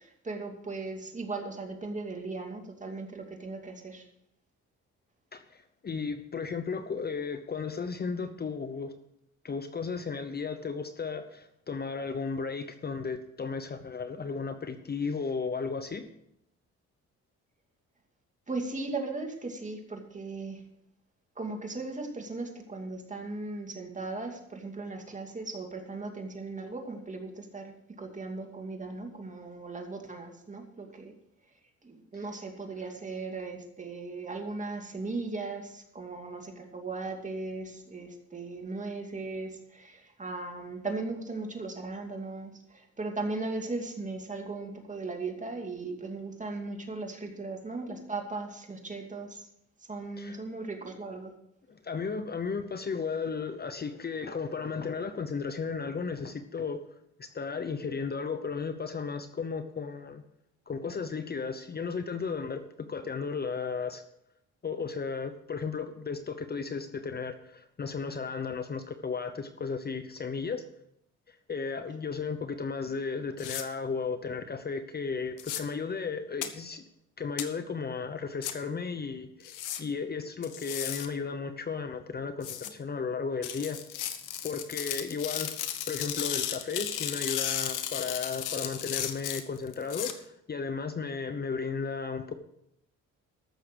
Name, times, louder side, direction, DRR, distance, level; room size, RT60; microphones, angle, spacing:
voice 1, 0.0-4.1 18.5-20.7 21.4-31.1 31.8-49.5 49.9-51.4, right 3 dB, 25° right, 3 dB, 2.5 m, -37 dB
voice 2, 5.3-8.9 9.4-16.0 32.1-32.2 50.2-50.4 51.7-56.8 57.2-60.2 60.7-62.6 62.9-64.0 64.6-70.6 71.3-76.8 77.2-83.8 84.4-85.5 85.9-92.3, left 5 dB, 30° left, 9 dB, 0.9 m, -34 dB
sound 1, 73.4-73.6 75.4-75.6 76.4-76.5 77.4-77.5 78.4-78.5 79.4-79.8 80.4-81.1 82.4-82.7 83.4-90.1, left 10 dB, 85° left, 1.3 m, -34 dB
14.5 x 6.5 x 6.3 m, 0.75 s
cardioid pair, 90°, 30 cm